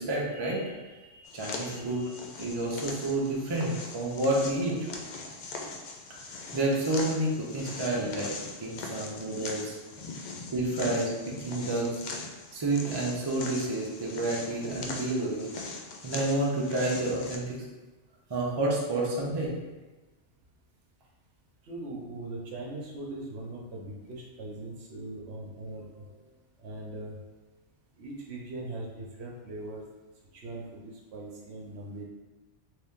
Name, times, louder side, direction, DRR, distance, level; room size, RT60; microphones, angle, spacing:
voice 1, 0.0-2.1 2.4-4.9 6.5-8.3 8.6-9.8 10.5-12.0 12.5-15.5 16.0-17.6 18.3-19.5, right 2 dB, 35° right, -3 dB, 0.4 m, -30 dB
sound 1, 1.2-17.4, left 3 dB, 65° left, 0.4 m, -41 dB
voice 2, 21.6-26.3 26.6-27.2 28.0-29.8 30.3-32.0, right 2 dB, 65° right, -2 dB, 0.9 m, -40 dB
3.1 x 2.7 x 3.5 m, 1.2 s
omnidirectional pair, 1.3 m